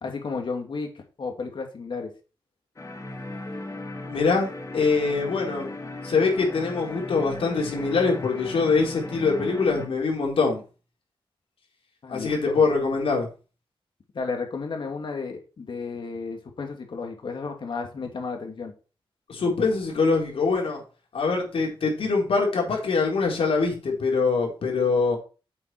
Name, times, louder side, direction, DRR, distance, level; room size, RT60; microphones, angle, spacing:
voice 1, 0.0-0.9 1.2-2.1 12.0-12.6 14.1-18.7, left 4 dB, 60° left, 3 dB, 2.6 m, -33 dB
sound 1, 2.8-9.9, left 2 dB, 35° left, 2.1 m, -37 dB
voice 2, 4.0-10.6 12.1-13.3 19.3-20.8 21.1-25.2, left 4 dB, 80° left, -1 dB, 4.4 m, -24 dB
8.3 x 7.8 x 4.7 m, 0.34 s
wide cardioid pair, 130°, 9 cm